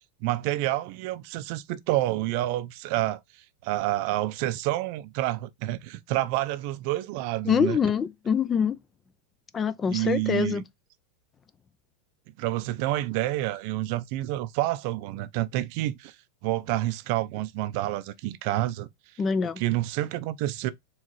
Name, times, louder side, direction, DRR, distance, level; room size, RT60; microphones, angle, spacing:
voice 1, 0.2-7.8 9.9-10.6 12.4-16.2 16.4-18.9 19.6-20.7, right 16 dB, 55° right, 0.4 m, -28 dB
voice 2, 7.4-8.8 9.5-10.6 19.2-19.6, left 6 dB, 20° left, 0.3 m, -25 dB
4.6 x 3.1 x 2.9 m
supercardioid pair, 140°, 0 cm